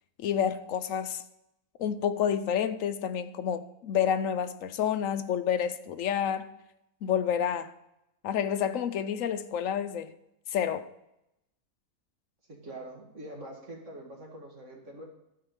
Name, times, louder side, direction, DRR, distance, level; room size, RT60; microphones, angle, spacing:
voice 1, 0.2-1.2 1.8-6.5 7.0-7.7 8.2-10.1 10.5-10.9, left 8 dB, 65° left, 1.0 m, -29 dB
voice 2, 12.5-15.1, right 1 dB, 50° right, 2.4 m, -44 dB
12.0 x 4.8 x 7.3 m
omnidirectional pair, 1.6 m